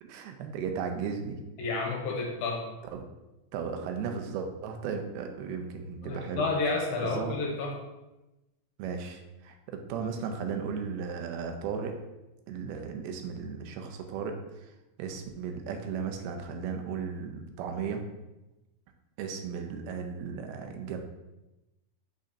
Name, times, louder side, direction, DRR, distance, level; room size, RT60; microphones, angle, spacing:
voice 1, 0.0-1.4 2.9-3.0 3.5-6.5 7.0-7.3 8.8-12.0 12.5-14.4 15.0-18.0 19.2-21.0, right 6 dB, 90° right, 5 dB, 2.6 m, -35 dB
voice 2, 1.6-2.6 6.0-7.8, left 3 dB, 75° left, 0 dB, 2.6 m, -30 dB
6.3 x 6.3 x 2.8 m, 1.0 s
omnidirectional pair, 4.4 m